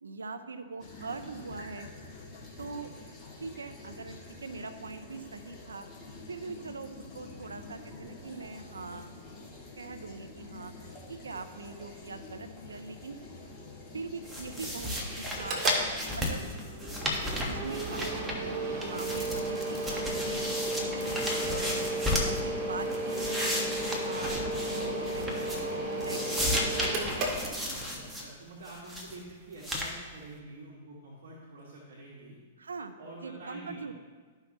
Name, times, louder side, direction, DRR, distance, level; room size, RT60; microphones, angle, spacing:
voice 1, 0.0-1.9 2.6-2.9 3.4-5.9 6.3-9.2 9.8-10.7 11.1-13.2 13.9-15.6 16.0-16.4 17.5-18.4 18.9-20.4 20.7-21.9 22.2-23.5 23.8-25.6 25.9-27.2 32.6-32.9 33.2-33.9, right 4 dB, 90° right, 9 dB, 0.6 m, -42 dB
sound 1, 0.8-16.6, left 3 dB, 20° left, 2.1 m, -47 dB
sound 2, 14.3-18.6 18.8-22.4 22.8-25.7 26.0-28.2 28.7-29.1 29.6-29.9, left 1 dB, 5° right, 1.4 m, -34 dB
Mechanical fan, 15.3-28.1, right 1 dB, 35° right, 1.9 m, -34 dB
voice 2, 27.9-32.4 33.0-33.8, right 2 dB, 70° right, -4 dB, 1.7 m, -47 dB
12.5 x 5.8 x 3.0 m, 1.5 s
hypercardioid pair, 115°, 0 cm